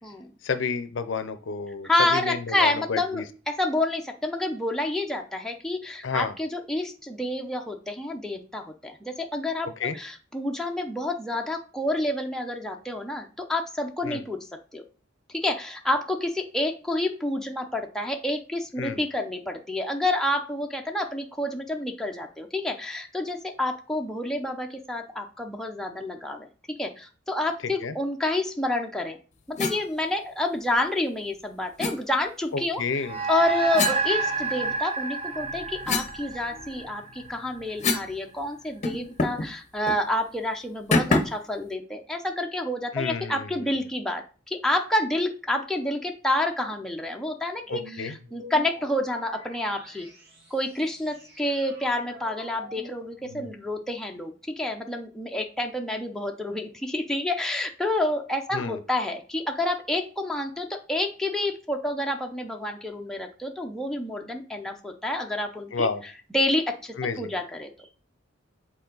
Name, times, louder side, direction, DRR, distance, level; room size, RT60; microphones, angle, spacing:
voice 1, 0.4-3.2 6.0-6.3 9.8-10.0 14.0-14.2 18.8-19.0 27.6-27.9 32.5-33.2 42.9-43.7 47.7-48.1 58.5-58.8 65.7-66.0 67.0-67.3, left 5 dB, 70° left, 12 dB, 0.6 m, -30 dB
voice 2, 1.8-14.4 14.7-14.8 15.3-26.5 26.8-29.2 29.5-32.8 33.3-50.1 50.5-65.9 66.3-67.9, left 1 dB, 5° left, 2 dB, 0.7 m, -29 dB
sound 1, 29.6-29.8 31.8-32.0 33.7-34.8 35.3-38.2 38.4-38.5 38.8-39.5 39.8-40.0 40.9-41.5, left 3 dB, 35° left, 0.8 m, -28 dB
sound 2, 33.0-37.7, right 4 dB, 30° right, 0.8 m, -30 dB
sound 3, 47.7-54.0, equal, 60° right, 2.0 m, -46 dB
7.0 x 4.3 x 3.9 m, 0.38 s
head